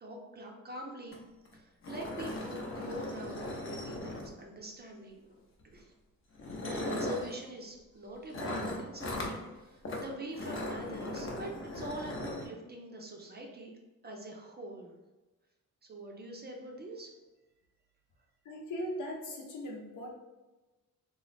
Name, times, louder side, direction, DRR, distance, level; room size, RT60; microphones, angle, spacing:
voice 1, 0.0-1.2 1.5-5.4 5.7-5.9 6.6-13.7 14.0-14.9 15.9-17.1, right 1 dB, 30° right, 0 dB, 0.5 m, -44 dB
sound 1, 1.1-1.2 1.5-1.6 1.8-4.6 5.6-5.8 6.4-7.3 8.3-9.4 9.8-10.0 10.3-12.5, left 1 dB, 40° left, 0.7 m, -38 dB
voice 2, 18.4-20.1, equal, 70° left, 1 dB, 0.8 m, -39 dB
3.1 x 2.0 x 4.0 m, 1.1 s
cardioid pair, 125°, 32 cm